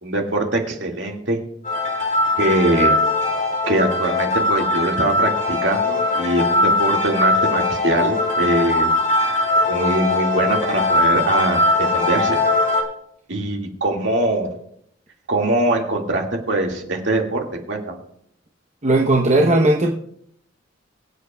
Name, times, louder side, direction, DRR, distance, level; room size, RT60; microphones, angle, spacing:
voice 1, 0.0-1.4 2.4-2.9 3.7-8.9 9.7-12.4 13.3-14.5 15.3-18.0, right 1 dB, 65° right, 1 dB, 2.0 m, -22 dB
sound 1, 1.6-12.8, left 2 dB, 45° left, 2.3 m, -20 dB
voice 2, 18.8-19.9, right 2 dB, 35° right, 0 dB, 0.8 m, -16 dB
23.5 x 8.2 x 2.3 m, 0.69 s
head